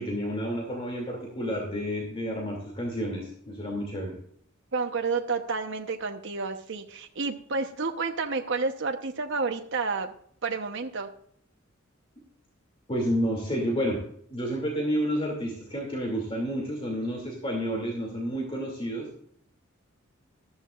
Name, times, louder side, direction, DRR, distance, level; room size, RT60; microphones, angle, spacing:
voice 1, 0.0-4.2 12.9-14.0 14.3-19.1, equal, 30° left, 0 dB, 2.6 m, -30 dB
voice 2, 4.7-10.1 10.4-11.1, right 4 dB, 65° right, 4 dB, 1.0 m, -30 dB
14.0 x 13.0 x 2.5 m, 0.63 s
head